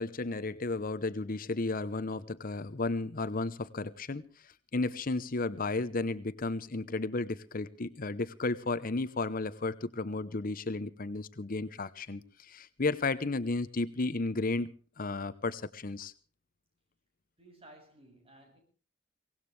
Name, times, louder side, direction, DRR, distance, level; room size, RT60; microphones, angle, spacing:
voice 1, 0.0-16.1, left 3 dB, 45° left, 0.9 m, -33 dB
voice 2, 17.4-18.6, right 1 dB, 30° right, 7.2 m, -56 dB
23.5 x 18.5 x 3.3 m
head